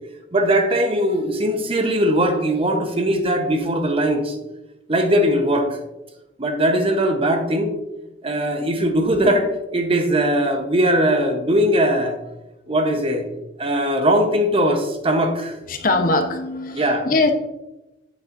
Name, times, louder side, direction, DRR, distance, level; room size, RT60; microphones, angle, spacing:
voice 1, 0.3-4.4 4.9-5.7 6.4-7.8 8.2-12.2 12.7-13.3 13.6-15.6 16.7-17.1, right 1 dB, 30° right, 5 dB, 0.9 m, -20 dB
voice 2, 15.7-17.3, left 2 dB, 50° left, 6 dB, 0.8 m, -21 dB
8.7 x 7.5 x 2.6 m, 0.98 s
head